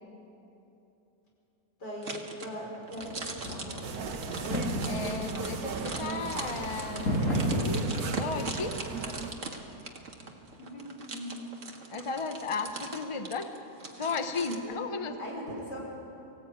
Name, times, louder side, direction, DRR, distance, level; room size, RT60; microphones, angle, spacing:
voice 1, 1.8-3.7 10.2-10.3 10.6-11.4 14.6-14.8 15.2-15.8, equal, 85° left, -2 dB, 5.8 m, -40 dB
sound 1, 2.0-14.6, right 3 dB, 50° right, 2.0 m, -41 dB
sound 2, 3.0-8.1, equal, 50° left, 3.9 m, -33 dB
sound 3, 3.8-9.3, right 5 dB, 65° right, 1.6 m, -38 dB
voice 2, 4.8-7.9 8.2-8.8 11.9-13.5 14.0-15.1, left 4 dB, 25° left, 7 dB, 0.9 m, -34 dB
23.5 x 16.5 x 9.1 m, 3.0 s
omnidirectional pair, 1.8 m